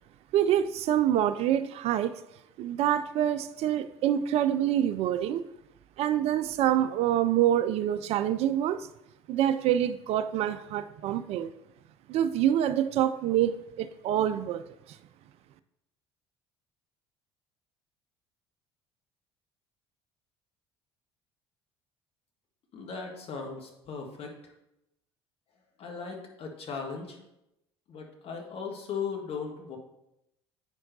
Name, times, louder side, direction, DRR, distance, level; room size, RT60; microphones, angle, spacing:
voice 1, 0.3-2.2 2.6-5.4 6.0-8.9 9.3-11.5 12.1-14.6, right 11 dB, 50° right, 12 dB, 0.4 m, -26 dB
voice 2, 22.7-24.3 25.8-27.2 27.9-29.8, left 5 dB, 45° left, 1 dB, 1.6 m, -37 dB
8.8 x 5.7 x 2.7 m, 0.86 s
figure-of-eight pair, 55°, 14 cm